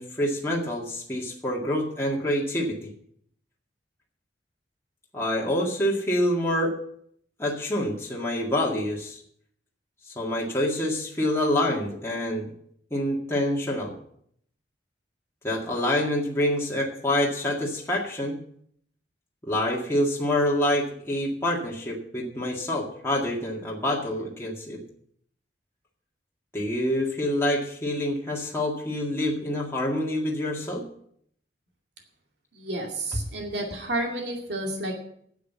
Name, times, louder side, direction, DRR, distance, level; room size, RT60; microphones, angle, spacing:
voice 1, 0.0-2.9 5.1-6.8 7.4-9.2 10.1-12.5 12.9-13.9 15.4-18.4 19.4-24.8 26.5-30.8, left 1 dB, 15° left, -3 dB, 1.9 m, -26 dB
voice 2, 32.5-35.0, right 1 dB, 70° right, 1 dB, 2.3 m, -31 dB
9.9 x 7.9 x 8.0 m, 0.67 s
head